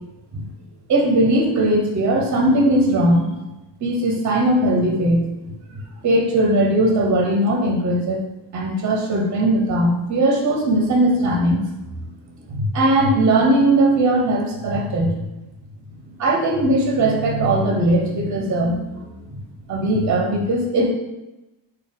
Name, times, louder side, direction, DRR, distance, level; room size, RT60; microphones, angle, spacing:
voice 1, 0.9-3.3 3.8-5.3 5.7-8.2 8.5-11.6 12.5-15.2 16.2-19.4 19.7-21.0, right 1 dB, 40° right, 0 dB, 0.6 m, -19 dB
3.6 x 2.3 x 3.7 m, 1.0 s
wide cardioid pair, 165°, 46 cm